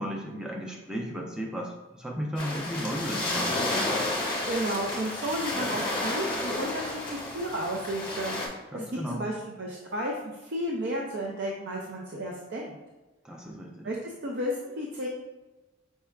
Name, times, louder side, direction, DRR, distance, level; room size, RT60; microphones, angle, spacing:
voice 1, 0.0-3.5 8.7-9.2 13.2-13.9, equal, 5° right, -1 dB, 0.5 m, -34 dB
sound 1, 2.4-8.5, left 2 dB, 25° left, 1.0 m, -31 dB
voice 2, 4.4-8.4 8.7-12.8 13.8-15.1, equal, 65° right, -1 dB, 0.5 m, -33 dB
5.4 x 3.5 x 2.3 m, 1.1 s
head